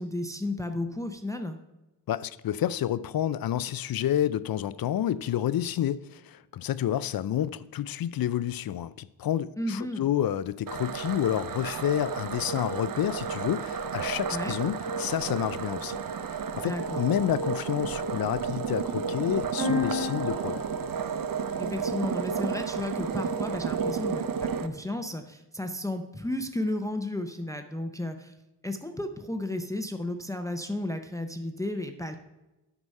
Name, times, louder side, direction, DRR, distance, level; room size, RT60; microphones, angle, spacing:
voice 1, 0.0-1.6 9.6-10.1 14.3-14.5 16.7-17.0 21.6-28.3 28.6-32.2, left 1 dB, 10° left, 0.6 m, -33 dB
voice 2, 2.1-16.0 16.3-20.6, left 11 dB, 60° left, 0.5 m, -29 dB
sound 1, 10.7-24.7, right 6 dB, 55° right, 0.7 m, -32 dB
sound 2, 19.6-23.3, left 3 dB, 90° right, 2.9 m, -35 dB
9.8 x 6.1 x 5.3 m
wide cardioid pair, 120°, 40 cm